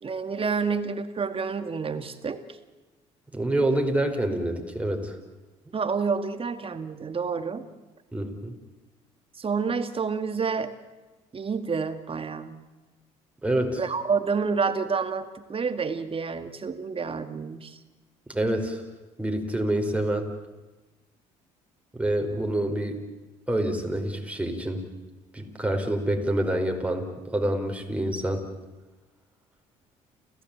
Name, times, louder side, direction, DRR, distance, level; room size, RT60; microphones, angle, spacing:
voice 1, 0.0-2.4 5.7-7.7 9.4-10.7 11.3-12.6 13.8-17.8, right 5 dB, 35° right, 9 dB, 2.2 m, -29 dB
voice 2, 3.3-5.2 8.1-8.5 13.4-13.8 18.3-18.8 19.2-20.3 21.9-23.0 23.5-24.9 25.3-28.5, right 1 dB, 10° right, 3 dB, 5.0 m, -27 dB
30.0 x 15.5 x 8.8 m, 1.2 s
hypercardioid pair, 65°, 16 cm